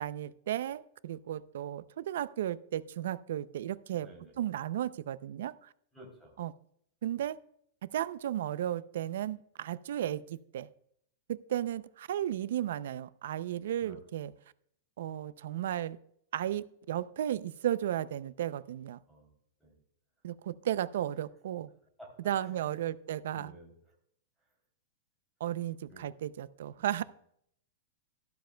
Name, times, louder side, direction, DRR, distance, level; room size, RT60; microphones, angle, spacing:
voice 1, 0.0-4.1 4.4-5.7 6.4-6.5 7.0-7.4 7.9-10.7 11.3-14.3 15.0-16.0 16.3-19.0 20.2-21.7 22.2-23.5 25.4-27.0, right 11 dB, 70° right, 17 dB, 0.5 m, -34 dB
voice 2, 4.0-4.4 5.9-6.4 13.8-14.0 19.1-19.3 19.6-19.7 22.0-22.8 23.3-23.9 25.9-26.1 26.8-27.0, right 1 dB, ahead, -1 dB, 3.3 m, -54 dB
13.0 x 12.5 x 2.3 m, 0.69 s
supercardioid pair, 170°, 0 cm